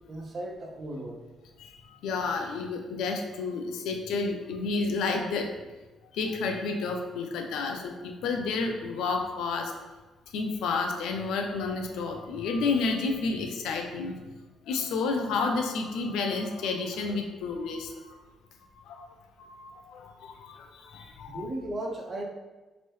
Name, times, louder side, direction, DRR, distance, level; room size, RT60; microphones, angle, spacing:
voice 1, 0.1-1.2 21.3-22.2, right 1 dB, 40° right, 1 dB, 0.6 m, -36 dB
voice 2, 1.6-5.5 6.1-9.8 10.3-14.2 14.7-18.2 18.8-19.1 19.4-21.4, left 4 dB, 85° left, 4 dB, 0.4 m, -31 dB
3.0 x 2.7 x 3.1 m, 1.2 s
cardioid pair, 90°, 0 cm